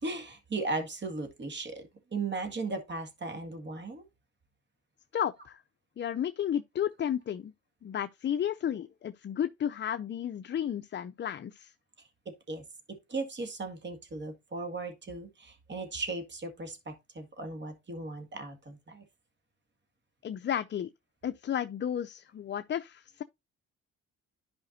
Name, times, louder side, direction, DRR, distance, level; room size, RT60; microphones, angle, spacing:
voice 1, 0.0-4.0 12.0-19.0, right 3 dB, 35° right, 2.0 m, -37 dB
voice 2, 5.1-5.6 6.0-7.5 7.8-11.7 20.2-20.9 21.2-23.2, left 9 dB, 40° left, 0.5 m, -33 dB
11.5 x 5.0 x 2.6 m
cardioid pair, 90°, 30 cm